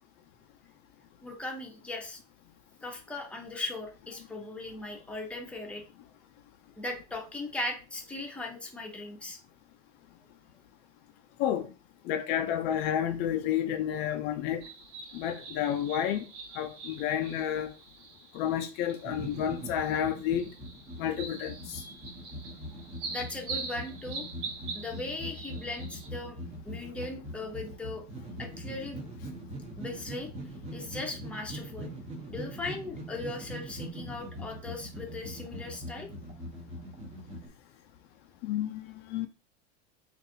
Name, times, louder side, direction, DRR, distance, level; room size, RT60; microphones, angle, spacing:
voice 1, 1.2-2.2 2.8-5.8 6.8-9.4 23.1-24.3 24.7-26.4 26.6-28.0 28.4-29.1 29.8-30.3 30.7-31.9 32.3-36.1, left 2 dB, 5° left, 0.7 m, -38 dB
voice 2, 12.1-14.6 15.1-16.3 16.6-17.7 18.3-20.5 21.0-21.8 38.4-39.3, left 10 dB, 50° left, 0.4 m, -30 dB
sound 1, 14.6-26.1, right 4 dB, 70° right, 1.3 m, -44 dB
sound 2, 19.0-37.5, equal, 30° right, 0.9 m, -42 dB
3.9 x 2.6 x 2.7 m
supercardioid pair, 135°, 21 cm